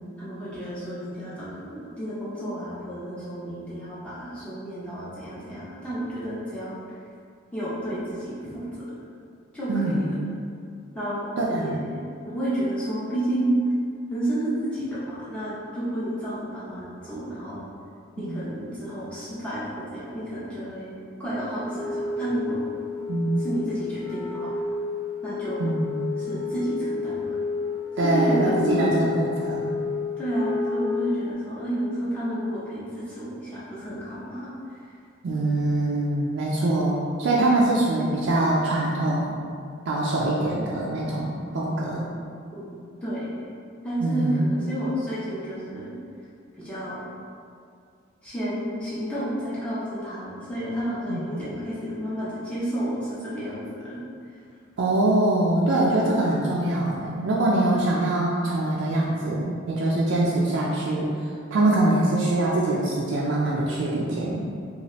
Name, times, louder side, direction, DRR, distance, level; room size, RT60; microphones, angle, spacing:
voice 1, 0.2-6.8 7.5-8.8 9.5-10.2 10.9-11.3 11.5-12.0 12.3-13.6 14.1-17.6 18.2-20.9 21.2-22.7 23.4-24.6 25.2-25.6 26.2-27.3 27.9-29.0 30.2-34.5 42.5-43.3 43.8-45.9 46.6-47.0 48.2-54.0, right 1 dB, 5° left, -11 dB, 0.5 m, -31 dB
voice 2, 9.7-10.1 11.4-11.8 18.3-18.4 23.1-23.5 25.6-26.0 28.0-29.7 35.2-39.4 39.9-42.1 44.0-44.6 51.1-51.2 54.8-64.5, right 2 dB, 65° right, -5 dB, 0.3 m, -23 dB
Wind instrument woodwind instrument, 21.6-31.3, left 4 dB, 80° left, 0.5 m, -30 dB
2.7 x 2.4 x 3.0 m, 2.3 s
head